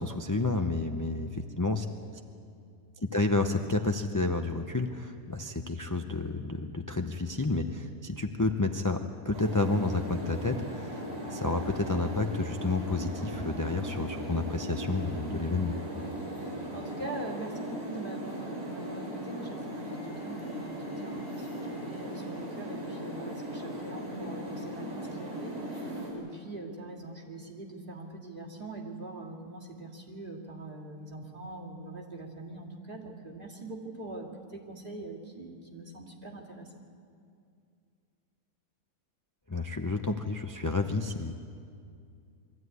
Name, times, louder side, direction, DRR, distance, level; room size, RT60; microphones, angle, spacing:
voice 1, 0.0-1.8 3.0-11.0 11.3-15.8 39.5-41.3, left 3 dB, 25° left, 5 dB, 0.4 m, -30 dB
sound 1, 9.3-26.1, right 1 dB, 55° right, 5.8 m, -38 dB
voice 2, 15.9-36.8, right 2 dB, 35° right, -1 dB, 2.6 m, -43 dB
23.0 x 14.5 x 9.5 m, 2.4 s
omnidirectional pair, 1.6 m